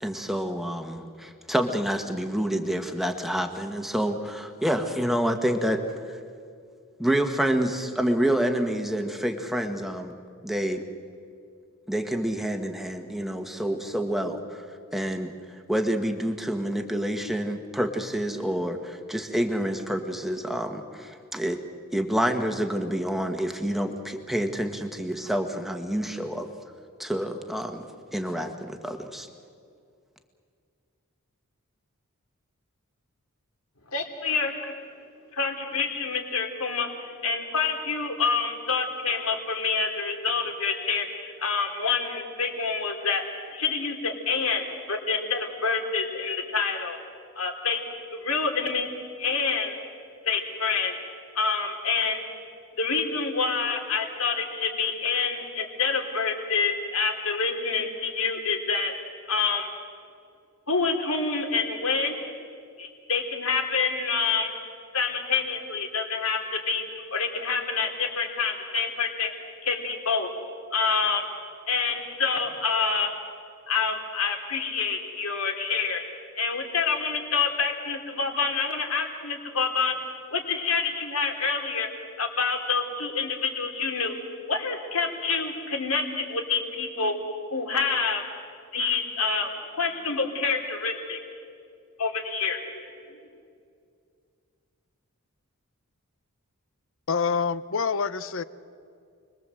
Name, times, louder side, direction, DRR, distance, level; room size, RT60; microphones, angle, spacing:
voice 1, 0.0-6.2 7.0-10.1 10.4-10.8 11.9-14.6 14.9-15.3 15.7-21.6 21.9-26.5 27.0-27.8 28.1-29.3, equal, ahead, 5 dB, 1.5 m, -28 dB
voice 2, 33.9-34.7 35.3-47.0 47.4-47.8 48.1-48.9 49.2-49.8 50.2-50.9 51.3-52.2 52.8-58.9 59.3-59.7 60.7-62.2 62.8-64.5 64.9-66.8 67.1-69.3 69.6-70.3 70.7-71.2 71.7-73.1 73.7-76.0 76.4-80.0 80.3-81.9 82.2-84.1 84.5-87.1 87.5-88.2 88.7-89.5 89.7-91.2 92.0-92.8 93.1-93.2, left 5 dB, 80° left, 3 dB, 3.4 m, -27 dB
voice 3, 97.1-98.4, left 5 dB, 60° left, 15 dB, 0.8 m, -26 dB
29.5 x 22.0 x 7.8 m, 2.3 s
head